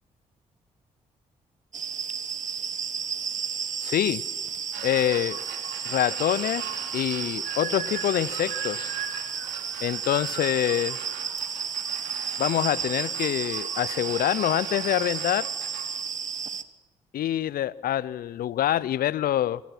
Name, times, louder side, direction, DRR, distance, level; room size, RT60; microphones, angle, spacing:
sound 1, 1.7-16.6, right 7 dB, 45° right, 1.1 m, -32 dB
voice 1, 3.8-4.2 4.8-5.4 5.8-9.0 9.8-11.0 12.4-15.5 17.1-19.6, left 12 dB, 60° left, 0.6 m, -26 dB
sound 2, 4.7-15.8, right 7 dB, 75° right, 2.9 m, -40 dB
25.5 x 17.0 x 6.0 m
hypercardioid pair, 40°, 17 cm